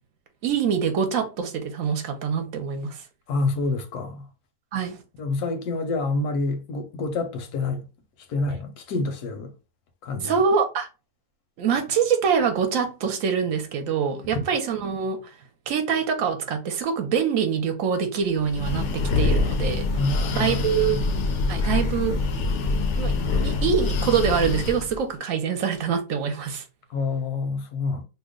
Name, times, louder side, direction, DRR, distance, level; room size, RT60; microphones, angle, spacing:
voice 1, 0.4-3.0 4.7-5.0 10.2-10.9 11.6-15.2 15.7-19.9 20.3-21.0 21.5-22.2 23.0-23.1 23.4-26.6, right 6 dB, 65° right, 1.0 m, -25 dB
voice 2, 3.3-4.3 5.2-7.8 8.3-9.5 10.0-10.4 19.9-20.6 20.9-21.1 26.9-28.0, left 3 dB, 85° left, 1.2 m, -27 dB
Breathing, 18.4-25.0, left 3 dB, 65° left, 0.8 m, -25 dB
2.9 x 2.1 x 3.6 m
omnidirectional pair, 1.6 m